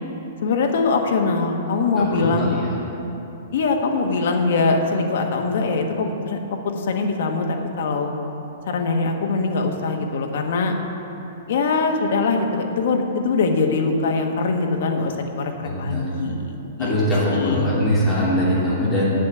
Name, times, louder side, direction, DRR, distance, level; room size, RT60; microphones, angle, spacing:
voice 1, 0.4-2.6 3.5-8.1 8.7-10.7 11.5-16.9 17.3-17.7, left 4 dB, 55° left, 3 dB, 1.3 m, -22 dB
voice 2, 2.0-2.7 15.6-16.1 16.8-19.1, equal, 5° left, -10 dB, 2.7 m, -22 dB
8.3 x 8.2 x 7.5 m, 2.9 s
hypercardioid pair, 170°, 0 cm